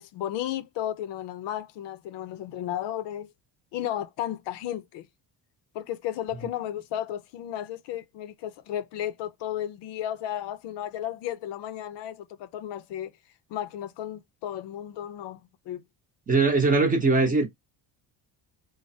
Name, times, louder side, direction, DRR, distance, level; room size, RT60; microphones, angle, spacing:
voice 1, 0.0-3.3 3.7-5.1 5.7-13.1 13.5-15.8, left 11 dB, 70° left, 0.6 m, -34 dB
voice 2, 16.3-17.5, right 3 dB, 20° right, 0.7 m, -21 dB
3.1 x 2.1 x 2.6 m
cardioid pair, 140°, 44 cm